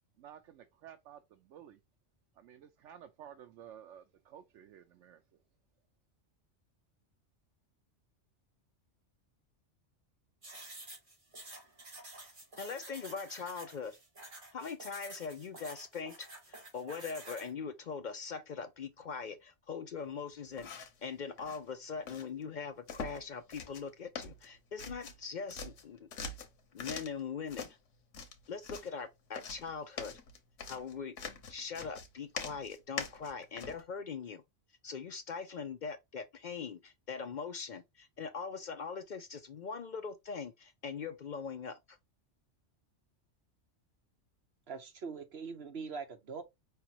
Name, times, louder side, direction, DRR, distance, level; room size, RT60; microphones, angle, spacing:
voice 1, 0.2-1.8 2.4-5.4, right 9 dB, 90° right, 0.9 m, -53 dB
sound 1, 10.4-17.5, right 2 dB, 45° right, 2.1 m, -50 dB
voice 2, 12.6-14.0 14.5-26.1 26.7-27.8 28.5-30.2 30.7-34.4 34.8-42.0, left 5 dB, 55° left, 0.5 m, -41 dB
sound 2, 20.5-21.0 21.4-21.6 22.1-22.3 22.9-23.2 23.5-23.9 24.2-25.2 25.5-27.2 27.5-27.7 28.1-28.9 29.3-33.8, left 5 dB, 90° left, 1.2 m, -43 dB
voice 3, 44.7-46.4, right 5 dB, 60° right, 1.2 m, -42 dB
4.9 x 3.3 x 2.8 m
omnidirectional pair, 1.2 m